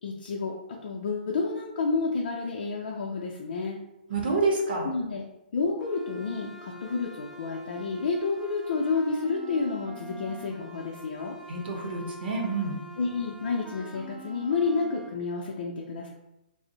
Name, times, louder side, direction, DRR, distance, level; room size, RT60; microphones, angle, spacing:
voice 1, 0.0-3.9 4.8-5.2 5.5-11.4 13.0-16.1, left 4 dB, 65° left, -2 dB, 0.4 m, -30 dB
voice 2, 4.1-4.9 11.5-12.8, right 3 dB, 75° right, -1 dB, 0.7 m, -28 dB
sound 1, 5.8-15.1, right 1 dB, 5° right, 0.3 m, -45 dB
2.5 x 2.0 x 3.8 m, 0.89 s
hypercardioid pair, 150°, 5 cm